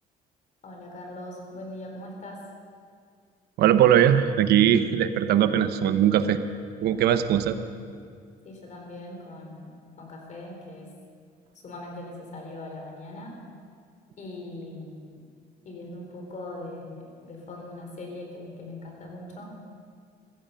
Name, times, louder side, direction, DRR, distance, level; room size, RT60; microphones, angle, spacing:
voice 1, 0.6-2.4 8.4-9.7 10.0-10.9 11.6-13.3 14.2-15.3 15.6-19.5, left 2 dB, 45° left, 1 dB, 4.0 m, -40 dB
voice 2, 3.6-6.4 6.8-7.6, right 10 dB, 75° right, 11 dB, 0.9 m, -20 dB
15.5 x 14.5 x 5.7 m, 2.2 s
cardioid pair, 110°, 17 cm